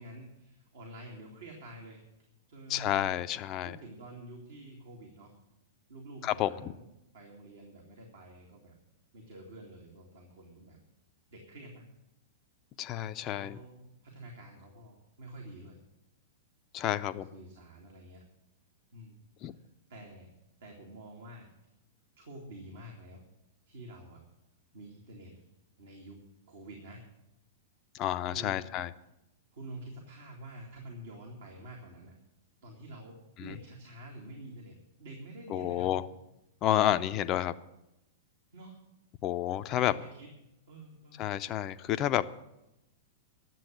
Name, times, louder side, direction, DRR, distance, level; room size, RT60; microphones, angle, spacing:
voice 1, 0.0-2.0 2.5-3.1 3.6-5.3 5.9-6.9 7.1-8.7 9.1-10.8 11.3-11.8 13.3-15.8 16.9-18.2 18.9-19.6 19.9-20.3 20.6-21.5 22.2-23.2 23.7-24.2 24.7-25.3 25.8-26.2 26.5-27.0 28.3-28.7 29.5-32.1 32.6-36.0 38.5-38.8 39.5-40.3 40.7-41.3, right 1 dB, 65° right, -1 dB, 2.4 m, -48 dB
voice 2, 2.7-3.8 6.2-6.7 12.8-13.6 16.7-17.3 19.4-19.5 27.9-28.9 33.4-33.5 35.5-36.0 36.6-37.5 39.2-39.9 41.2-42.3, left 12 dB, 35° left, 12 dB, 0.5 m, -30 dB
10.5 x 7.6 x 9.6 m, 0.90 s
figure-of-eight pair, 100°, 0 cm